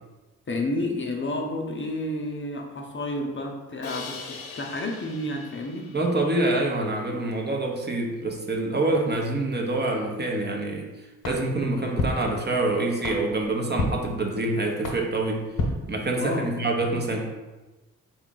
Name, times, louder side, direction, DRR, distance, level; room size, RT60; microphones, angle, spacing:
voice 1, 0.5-5.9 16.2-16.5, left 1 dB, 35° left, 1 dB, 0.6 m, -30 dB
Crash cymbal, 3.8-6.9, left 5 dB, 85° left, 0.6 m, -42 dB
voice 2, 5.9-10.9 11.2-15.5 15.9-17.2, right 2 dB, 30° right, 1 dB, 0.7 m, -26 dB
sound 1, 11.2-16.5, left 2 dB, 60° left, 0.9 m, -33 dB
3.5 x 2.3 x 3.8 m, 1.1 s
supercardioid pair, 50°, 36 cm